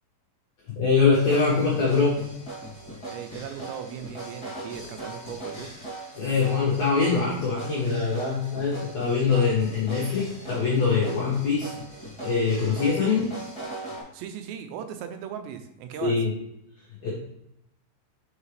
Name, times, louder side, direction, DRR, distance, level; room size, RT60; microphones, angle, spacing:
voice 1, 0.7-2.2 2.9-3.0 6.2-11.7 12.2-13.3 16.0-16.3 17.0-17.1, left 5 dB, 85° left, -5 dB, 1.5 m, -23 dB
sound 1, 1.1-14.0, right 2 dB, 25° left, 0.5 m, -40 dB
voice 2, 3.1-5.7 14.1-16.2, right 8 dB, 85° right, 7 dB, 2.8 m, -38 dB
6.3 x 4.9 x 3.3 m, 0.83 s
omnidirectional pair, 4.9 m